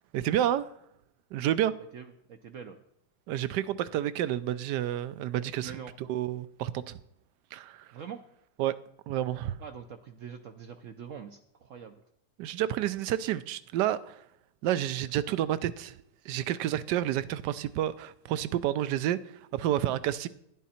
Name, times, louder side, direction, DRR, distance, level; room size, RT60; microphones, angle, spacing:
voice 1, 0.1-0.7 1.3-1.7 3.3-7.0 7.5-7.9 8.6-8.8 9.1-9.6 12.4-14.2 14.6-15.9 16.2-20.3, right 12 dB, 80° right, 1.2 m, -30 dB
voice 2, 1.9-2.8 5.6-5.9 7.9-8.2 9.6-12.0, right 7 dB, 65° right, 0.8 m, -44 dB
11.0 x 10.5 x 4.3 m
omnidirectional pair, 1.9 m